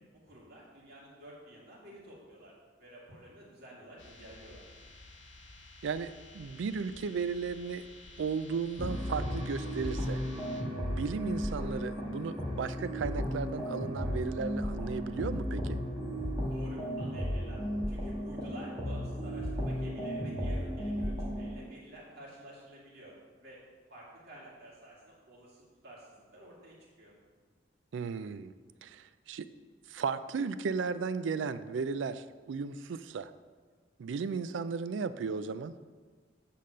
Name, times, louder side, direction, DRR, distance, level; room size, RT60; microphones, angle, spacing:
voice 1, 0.1-4.6 16.5-23.1 23.4-23.6 23.9-27.1, right 1 dB, 55° right, -5 dB, 2.3 m, -51 dB
sound 1, 4.0-10.6, left 2 dB, 75° left, 1.3 m, -52 dB
voice 2, 5.8-7.9 8.2-10.2 10.8-15.8 27.9-28.5 28.8-29.5 29.9-33.3 34.0-35.7, right 5 dB, 75° right, 13 dB, 0.4 m, -35 dB
sound 2, 8.8-21.6, equal, 25° right, 1.6 m, -34 dB
8.4 x 4.1 x 6.3 m, 1.5 s
head